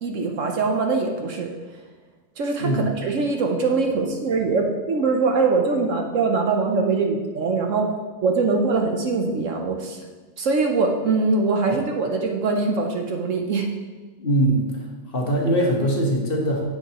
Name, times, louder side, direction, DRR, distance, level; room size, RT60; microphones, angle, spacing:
voice 1, 0.0-1.5 2.4-7.9 8.2-10.0 10.4-13.7, right 4 dB, 60° right, 3 dB, 1.1 m, -22 dB
voice 2, 14.2-14.7 15.1-16.6, right 1 dB, 40° left, -1 dB, 1.3 m, -21 dB
9.5 x 7.4 x 2.9 m, 1.4 s
omnidirectional pair, 1.5 m